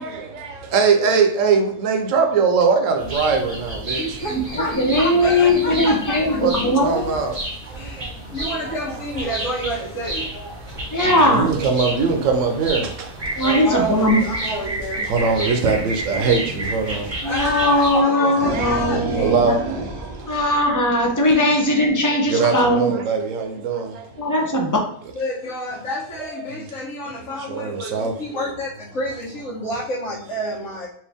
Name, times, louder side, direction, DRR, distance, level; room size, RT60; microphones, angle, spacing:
voice 1, 0.0-4.0 6.4-7.4 8.5-8.6 11.0-12.9 15.1-17.1 17.9-18.8 19.1-19.6 22.3-23.9 26.4-26.5 27.5-28.1, right 5 dB, 75° right, 4 dB, 1.1 m, -21 dB
sound 1, 3.0-18.0, right 1 dB, 25° right, 0.9 m, -31 dB
voice 2, 4.0-6.4 7.1-7.2 7.7-8.0 8.3-10.3 13.4-15.1 17.2-19.4 25.1-30.9, equal, 75° left, -11 dB, 1.6 m, -29 dB
voice 3, 4.7-7.1 10.9-11.5 13.4-14.2 16.2-16.4 17.2-19.6 20.3-22.9 24.2-24.8, left 1 dB, 25° left, 1 dB, 0.4 m, -19 dB
sound 2, 18.2-21.3, right 3 dB, 40° right, 0.5 m, -29 dB
4.6 x 2.6 x 3.4 m, 0.62 s
omnidirectional pair, 1.4 m